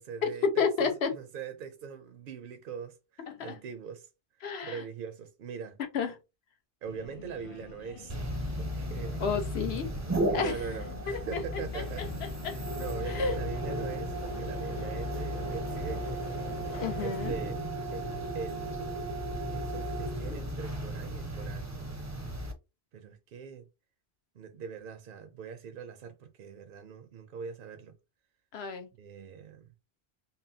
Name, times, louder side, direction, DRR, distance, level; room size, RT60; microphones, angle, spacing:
voice 1, 0.0-4.1 4.6-5.8 6.8-8.1 8.5-9.2 10.2-12.1 12.4-16.5 17.0-17.6 17.9-18.1 18.3-18.9 19.5-21.7 22.9-23.6 24.4-27.9 29.0-29.7, right 6 dB, 60° right, 0.7 m, -42 dB
voice 2, 0.6-1.1 3.3-3.6 4.4-4.8 5.9-6.2 9.2-9.9 10.3-10.6 11.1-12.6 13.1-13.4 16.8-17.3 28.5-28.9, left 5 dB, 75° left, 1.0 m, -31 dB
Subway metro underground, 6.8-17.1, left 6 dB, 55° left, 0.3 m, -47 dB
sound 1, 8.1-22.5, right 1 dB, 20° right, 0.5 m, -35 dB
5.5 x 2.0 x 2.7 m
omnidirectional pair, 1.1 m